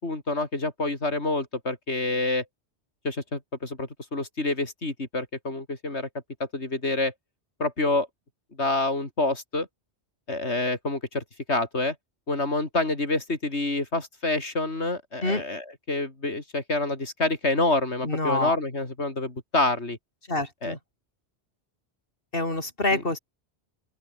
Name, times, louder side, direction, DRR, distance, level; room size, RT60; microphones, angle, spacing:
voice 1, 0.0-2.4 3.0-6.1 6.4-7.1 7.6-8.1 8.6-9.7 10.3-11.9 12.3-20.0 20.6-20.8 22.9-23.0, left 2 dB, 90° left, 4.5 m, -27 dB
voice 2, 18.0-18.6 20.3-20.8 22.3-23.2, left 2 dB, 55° left, 5.0 m, -26 dB
open air
omnidirectional pair, 1.1 m